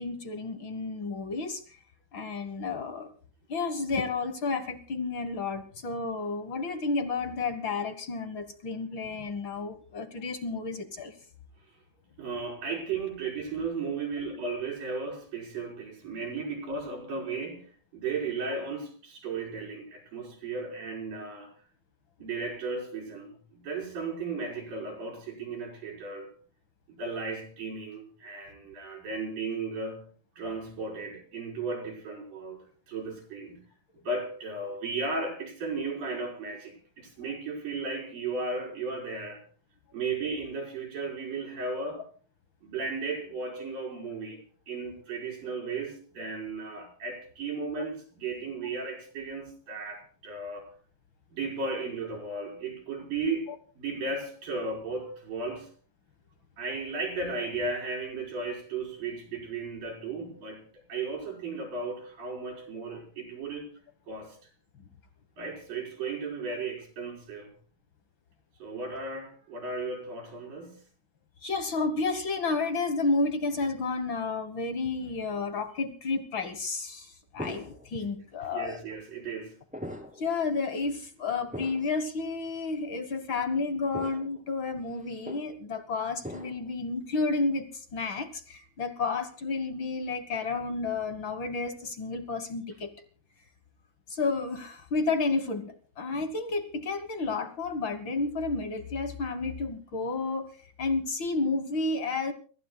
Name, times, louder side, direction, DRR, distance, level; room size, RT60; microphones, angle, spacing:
voice 1, 0.0-1.6 2.1-3.1 3.5-11.1 47.8-47.9 71.4-78.8 80.2-92.9 94.1-100.5 100.8-102.3, left 3 dB, 55° left, 1.3 m, -31 dB
voice 2, 12.2-21.5 22.2-26.3 26.9-30.0 30.4-33.7 34.0-39.4 39.9-42.0 42.6-44.4 44.7-50.7 51.3-53.5 53.8-55.7 56.6-63.7 64.1-64.5 65.4-67.5 68.6-70.9 78.5-79.6, right 4 dB, 65° right, 6.2 m, -35 dB
sound 1, 77.4-78.0 78.7-78.8 79.7-80.3 80.7-80.9 81.5-82.0 82.7-82.8 83.9-84.4 84.8-85.5 86.2-86.7, equal, 5° right, 1.9 m, -41 dB
30.0 x 15.5 x 2.3 m
omnidirectional pair, 4.2 m